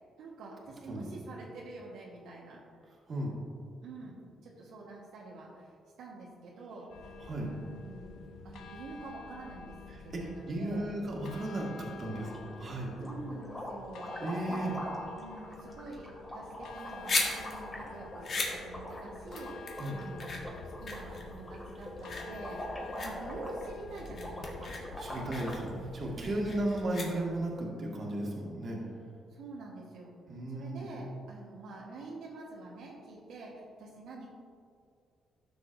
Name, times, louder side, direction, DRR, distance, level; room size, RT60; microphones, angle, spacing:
voice 1, 0.2-2.6 3.8-8.2 8.4-10.9 13.0-14.2 14.5-14.7 15.2-19.7 19.9-22.6 23.0-24.7 26.2-26.5 29.3-30.1 30.5-34.3, right 2 dB, 80° right, -4 dB, 1.2 m, -47 dB
sound 1, 6.9-26.9, left 3 dB, 80° left, 0.7 m, -49 dB
voice 2, 10.1-12.3 12.6-12.9 14.2-14.7 19.8-20.0 25.0-28.8 30.3-30.9, right 1 dB, 50° right, -2 dB, 1.8 m, -35 dB
sound 2, 12.0-12.6 12.9-25.7, left 1 dB, 20° left, 2.0 m, -43 dB
sound 3, 16.7-27.6, left 3 dB, 50° left, 1.5 m, -38 dB
12.0 x 6.8 x 2.6 m, 2.3 s
cardioid pair, 90°, 0 cm